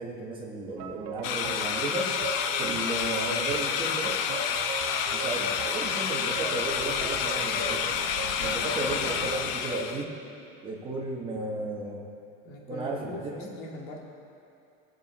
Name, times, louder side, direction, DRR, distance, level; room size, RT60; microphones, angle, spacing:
voice 1, 0.0-2.1 2.6-4.1 5.1-8.0 8.4-10.2 10.6-12.1 12.7-13.5, right 2 dB, 15° right, -2 dB, 1.4 m, -34 dB
sound 1, 0.8-9.4, right 8 dB, 60° right, 0.9 m, -39 dB
sound 2, 1.2-10.0, left 8 dB, 80° left, 0.9 m, -29 dB
sound 3, 2.2-2.3 3.3-3.4 4.3-4.5 5.4-5.6 6.5-6.6 7.5-7.7 8.6-8.8 9.7-9.8, left 4 dB, 10° left, 1.6 m, -37 dB
voice 2, 12.4-14.0, left 2 dB, 65° left, -1 dB, 2.4 m, -41 dB
21.5 x 8.0 x 4.2 m, 2.6 s
cardioid pair, 170°, 30 cm